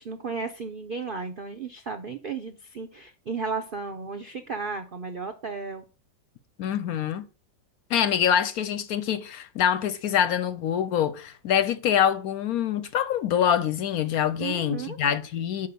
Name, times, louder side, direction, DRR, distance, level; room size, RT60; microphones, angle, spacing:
voice 1, 0.0-5.8 14.4-15.0, right 5 dB, 70° right, 0.5 m, -34 dB
voice 2, 6.6-7.3 7.9-15.7, left 9 dB, 70° left, 1.0 m, -25 dB
5.6 x 5.5 x 6.7 m
omnidirectional pair, 1.9 m